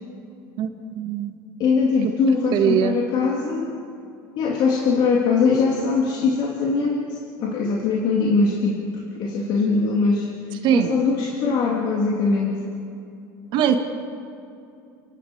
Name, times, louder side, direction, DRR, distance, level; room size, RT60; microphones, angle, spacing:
voice 1, 0.6-1.3 2.5-3.0 10.6-11.0 13.5-13.7, right 9 dB, 50° right, 5 dB, 1.6 m, -21 dB
voice 2, 1.6-3.7 4.4-8.8 9.2-10.3 10.7-12.6, left 4 dB, 50° left, -1 dB, 2.9 m, -21 dB
29.5 x 12.0 x 7.9 m, 2.6 s
supercardioid pair, 135°, 10 cm